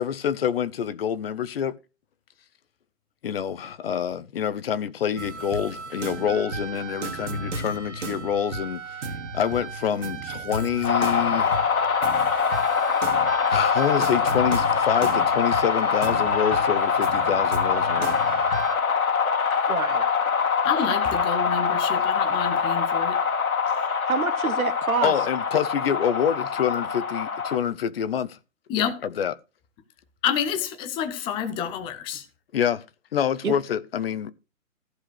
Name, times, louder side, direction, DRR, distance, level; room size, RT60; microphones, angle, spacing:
voice 1, 0.0-1.7 3.2-9.1 9.3-11.6 13.5-18.1 25.0-28.4 29.2-29.3 32.5-32.8 33.1-34.3, left 8 dB, 45° left, 1.1 m, -26 dB
sound 1, 5.2-18.7, right 3 dB, 60° right, 2.4 m, -34 dB
sound 2, 10.8-27.6, left 6 dB, 85° left, 2.1 m, -24 dB
voice 2, 19.7-20.1 23.7-25.1 33.4-33.6, right 6 dB, 80° right, 1.7 m, -27 dB
voice 3, 20.6-23.2 28.7-29.0 30.2-32.3, left 8 dB, 10° left, 0.8 m, -28 dB
14.5 x 4.9 x 6.4 m
hypercardioid pair, 150°, 42 cm